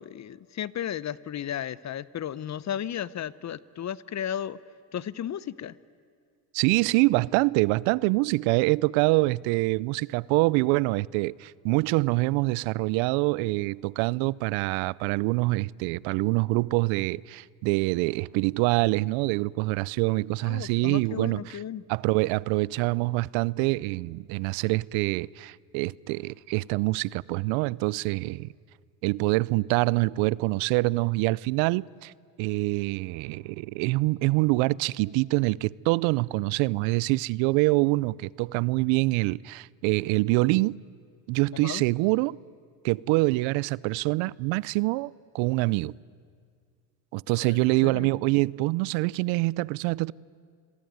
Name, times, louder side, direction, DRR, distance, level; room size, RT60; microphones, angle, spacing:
voice 1, 0.0-4.6 4.9-5.7 20.4-21.8 41.5-41.8 47.4-48.1, left 10 dB, 35° left, 0.8 m, -34 dB
voice 2, 6.5-21.6 21.9-28.5 29.0-32.1 32.4-40.8 41.3-42.4 42.8-46.0 47.1-50.1, right 22 dB, 80° right, 0.6 m, -25 dB
28.5 x 22.0 x 9.4 m
supercardioid pair, 95°, 46 cm